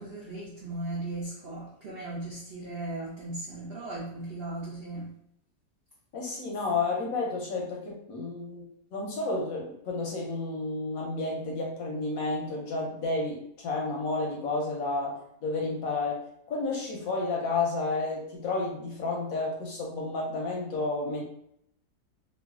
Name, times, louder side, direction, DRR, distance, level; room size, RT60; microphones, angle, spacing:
voice 1, 0.0-5.1, right 2 dB, 80° right, -5 dB, 0.5 m, -37 dB
voice 2, 6.1-8.6 8.9-16.2 16.5-21.2, left 3 dB, 65° left, -1 dB, 0.9 m, -31 dB
3.1 x 2.4 x 2.3 m, 0.71 s
omnidirectional pair, 1.8 m